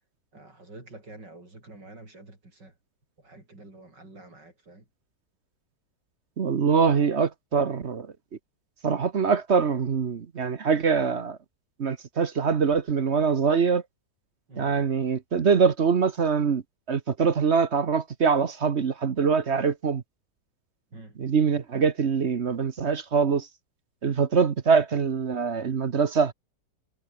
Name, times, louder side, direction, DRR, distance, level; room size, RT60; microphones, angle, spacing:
voice 1, 0.3-2.7 3.2-4.8 14.5-14.7 20.9-21.2, right 2 dB, 75° right, 7.4 m, -47 dB
voice 2, 6.4-8.1 8.8-11.4 11.8-13.8 14.6-16.6 16.9-20.0 21.2-23.5 24.0-26.3, right 5 dB, 45° right, 1.2 m, -23 dB
omnidirectional pair, 1.9 m